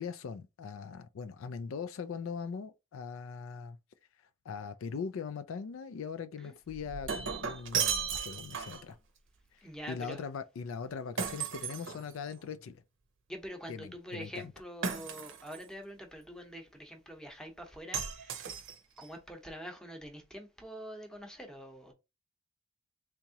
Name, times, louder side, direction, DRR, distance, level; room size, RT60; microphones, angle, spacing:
voice 1, 0.0-3.8 4.4-9.0 9.9-12.8 13.7-14.5, left 5 dB, 75° left, 0.4 m, -40 dB
Shatter, 6.7-8.9 11.2-12.5 14.8-15.6 17.9-19.0, right 6 dB, 65° right, 0.7 m, -35 dB
voice 2, 9.6-10.2 13.3-18.5 19.0-21.9, equal, 5° left, 0.8 m, -45 dB
3.5 x 2.9 x 2.8 m
head